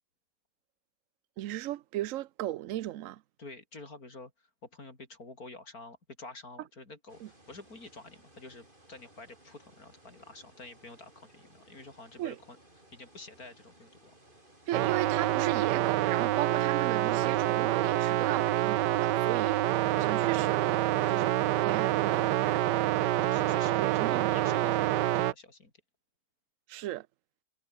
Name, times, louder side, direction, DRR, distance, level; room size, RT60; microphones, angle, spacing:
voice 1, 1.4-3.2 7.2-7.3 12.2-12.4 14.7-20.6 21.1-22.6 23.8-24.6 26.7-27.1, right 14 dB, 65° right, 0.8 m, -36 dB
voice 2, 3.4-4.3 4.6-12.6 12.9-14.1 23.0-25.7, left 2 dB, 55° left, 5.3 m, -49 dB
sound 1, 7.1-22.6, right 1 dB, 30° right, 6.3 m, -59 dB
sound 2, 14.7-25.3, right 16 dB, 80° right, 1.2 m, -27 dB
omnidirectional pair, 1.8 m